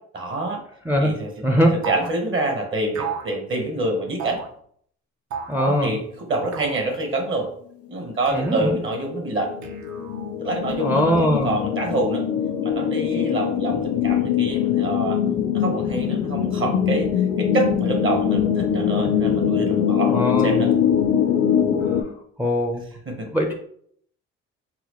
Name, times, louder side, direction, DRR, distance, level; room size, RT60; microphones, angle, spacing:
voice 1, 0.1-0.6 1.0-1.3 1.7-4.4 5.5-6.0 6.3-7.5 7.9-9.5 10.4-12.2 12.6-15.2 15.5-17.1 17.4-20.7 23.1-23.3, right 2 dB, 45° right, 2 dB, 1.0 m, -26 dB
voice 2, 1.4-1.8 5.5-5.9 8.3-8.8 10.8-11.5 20.1-20.6 21.8-22.1 22.4-22.8 23.3-23.5, equal, 5° right, 3 dB, 0.4 m, -21 dB
sound 1, 1.8-2.2 2.9-3.3 4.2-4.5 5.3-5.6 6.5-6.9 8.3-8.8 9.6-10.3, right 8 dB, 65° right, 0.6 m, -32 dB
sound 2, 8.5-22.0, left 8 dB, 50° left, 0.4 m, -22 dB
4.0 x 2.2 x 2.9 m, 0.63 s
cardioid pair, 90°, 30 cm